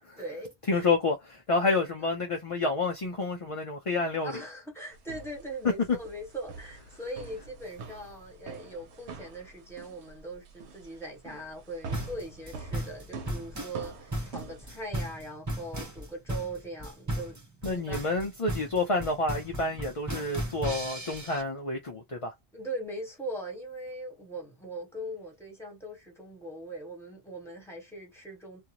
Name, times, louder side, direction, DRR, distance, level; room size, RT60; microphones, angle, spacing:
voice 1, 0.2-0.8 4.2-18.0 22.5-28.6, right 1 dB, ahead, 1.3 m, -40 dB
voice 2, 0.7-4.3 17.6-22.3, left 3 dB, 45° left, 0.5 m, -29 dB
sound 1, 4.9-15.2, right 4 dB, 80° right, 1.0 m, -46 dB
sound 2, 11.9-21.4, right 1 dB, 20° right, 0.7 m, -35 dB
2.4 x 2.3 x 2.8 m
omnidirectional pair, 1.1 m